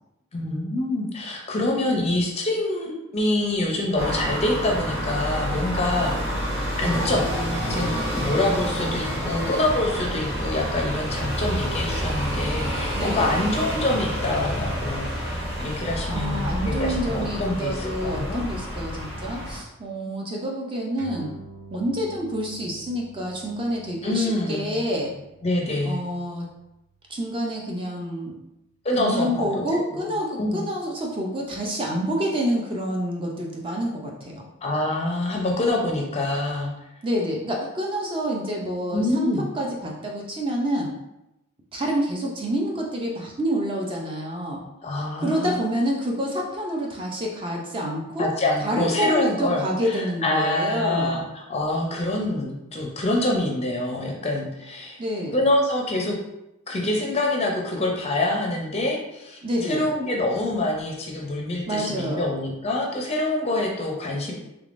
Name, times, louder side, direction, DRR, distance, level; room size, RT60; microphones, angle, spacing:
voice 1, 0.3-6.2 6.7-7.3 7.7-18.4 20.0-20.1 24.0-24.7 25.4-26.0 28.8-29.6 29.9-30.1 30.4-30.6 34.6-36.7 38.9-39.5 44.8-45.6 48.2-55.0 55.3-56.2 56.7-64.3, left 1 dB, 30° left, -1 dB, 0.5 m, -26 dB
sound 1, 4.0-19.6, equal, 55° right, 1.3 m, -28 dB
voice 2, 12.8-13.4 16.1-21.4 21.7-25.1 25.8-26.5 27.1-28.3 29.0-34.5 37.0-40.9 41.7-44.6 45.2-48.3 48.6-51.3 55.0-55.4 59.4-59.9 61.7-62.3, equal, 25° right, -1 dB, 0.5 m, -28 dB
sound 2, 21.0-27.8, right 4 dB, 80° right, 0.6 m, -48 dB
3.4 x 3.3 x 2.5 m, 0.89 s
head